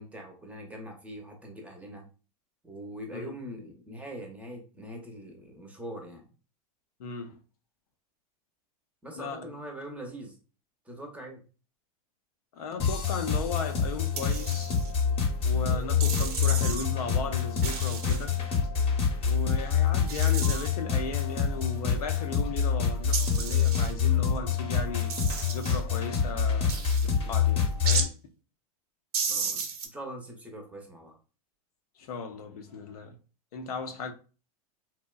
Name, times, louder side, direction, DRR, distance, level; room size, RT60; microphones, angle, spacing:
voice 1, 0.0-2.1 2.6-6.3 9.0-10.3 10.9-11.4 29.3-29.6 29.9-31.2, equal, 5° right, 0.6 m, -42 dB
voice 2, 7.0-7.4 9.2-9.5 12.5-14.8 15.4-18.4 19.2-25.1 25.5-26.8 27.2-28.1 32.0-33.2 33.5-34.1, left 4 dB, 80° left, 0.5 m, -36 dB
sound 1, 12.8-28.0, left 7 dB, 30° left, 0.8 m, -27 dB
sound 2, 14.2-14.9 16.0-16.9 17.6-18.3 20.1-20.7 23.1-23.9 25.1-25.8 26.7-27.1 27.9-28.1 29.1-29.9, right 6 dB, 85° right, 0.6 m, -33 dB
2.7 x 2.1 x 2.3 m
hypercardioid pair, 110°, 19 cm